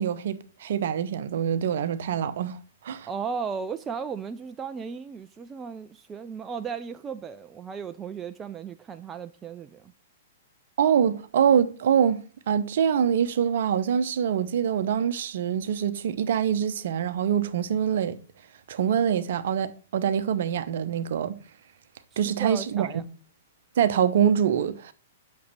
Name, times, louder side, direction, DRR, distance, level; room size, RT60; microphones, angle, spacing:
voice 1, 0.0-2.6 2.8-3.1 10.8-18.2 18.7-21.4 22.2-23.0 23.8-24.9, right 8 dB, 55° right, 0.7 m, -24 dB
voice 2, 3.1-9.9 22.1-23.0, right 6 dB, 20° right, 0.4 m, -35 dB
8.5 x 6.4 x 4.1 m
figure-of-eight pair, 105°, 0 cm